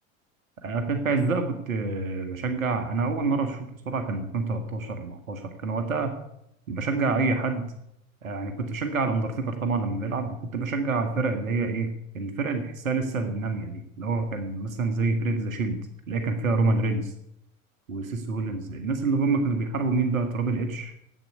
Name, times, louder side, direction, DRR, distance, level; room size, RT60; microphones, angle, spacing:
voice 1, 0.6-6.2 6.7-7.7 8.2-11.9 12.1-15.8 16.1-17.1 17.9-20.9, right 3 dB, 80° right, 7 dB, 1.8 m, -27 dB
10.5 x 8.6 x 9.5 m, 0.78 s
figure-of-eight pair, 80°, 40 cm